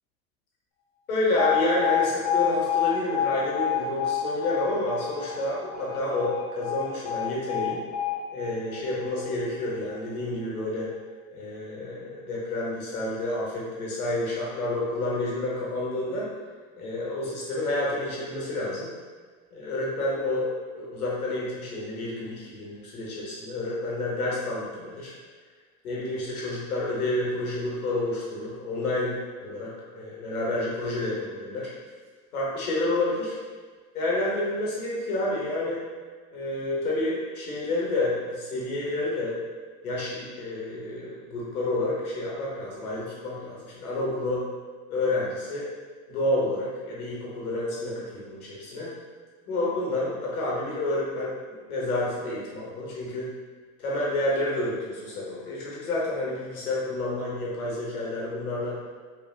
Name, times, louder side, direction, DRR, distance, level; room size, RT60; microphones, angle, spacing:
voice 1, 1.1-7.8 8.3-10.9 11.3-16.3 16.8-18.9 19.5-20.5 20.7-25.1 25.8-31.7 32.3-33.4 33.9-35.8 36.3-39.4 39.8-44.5 44.9-45.7 46.1-48.9 49.5-51.3 51.7-53.3 53.8-58.8, left 2 dB, 85° left, -5 dB, 1.0 m, -29 dB
Alarm, 1.4-9.4, left 9 dB, 40° left, 0.7 m, -28 dB
3.3 x 2.2 x 2.2 m, 1.5 s
hypercardioid pair, 85°, 43 cm